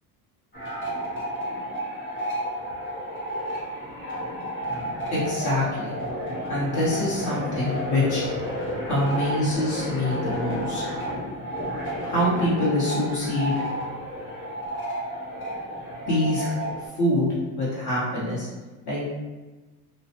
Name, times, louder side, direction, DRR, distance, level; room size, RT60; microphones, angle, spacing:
sound 1, 0.5-16.9, equal, 25° left, 0.9 m, -31 dB
voice 1, 5.1-5.9 6.5-8.2 8.9-10.8 12.1-13.5 16.1-16.5 16.8-18.5 18.9-19.1, left 1 dB, 55° left, -8 dB, 1.0 m, -25 dB
2.4 x 2.1 x 2.7 m, 1.2 s
supercardioid pair, 100°, 46 cm